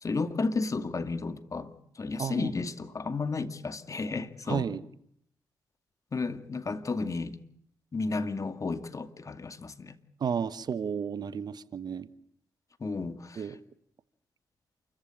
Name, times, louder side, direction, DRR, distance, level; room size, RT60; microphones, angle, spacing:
voice 1, 0.0-4.7 6.1-7.4 7.9-10.0 12.8-13.6, left 3 dB, 40° left, 2.2 m, -33 dB
voice 2, 2.2-2.5 4.5-4.8 10.2-12.1 13.4-13.6, right 7 dB, 55° right, 1.1 m, -32 dB
28.0 x 15.0 x 9.0 m
hypercardioid pair, 45°, 8 cm